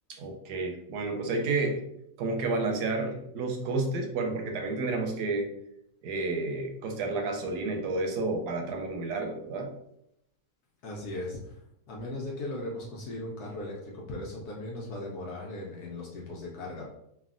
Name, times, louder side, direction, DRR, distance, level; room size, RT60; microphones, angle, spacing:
voice 1, 0.1-1.8 2.2-5.5 6.0-9.7, right 3 dB, 75° right, 3 dB, 1.1 m, -30 dB
voice 2, 10.8-11.6 11.9-16.8, left 1 dB, 70° left, -3 dB, 1.1 m, -38 dB
3.3 x 2.3 x 2.4 m, 0.78 s
omnidirectional pair, 1.8 m